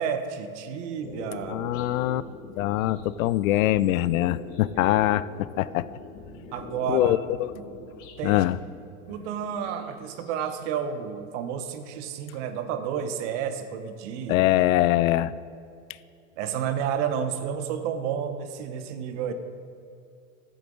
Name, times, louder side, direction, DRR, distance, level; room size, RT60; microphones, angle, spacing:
voice 1, 0.0-1.6 4.8-5.0 6.3-7.2 7.6-7.7 8.2-8.4 9.1-14.4 16.4-19.3, right 8 dB, 55° right, 9 dB, 1.1 m, -31 dB
sound 1, 1.0-8.2 9.2-10.6 10.8-11.8, left 4 dB, 50° left, 2.0 m, -43 dB
voice 2, 1.5-2.2 2.6-5.9 6.9-7.5 8.2-8.6 14.3-15.3, left 15 dB, 70° left, 18 dB, 0.5 m, -23 dB
13.5 x 7.8 x 3.9 m, 2.5 s
hypercardioid pair, 115°, 42 cm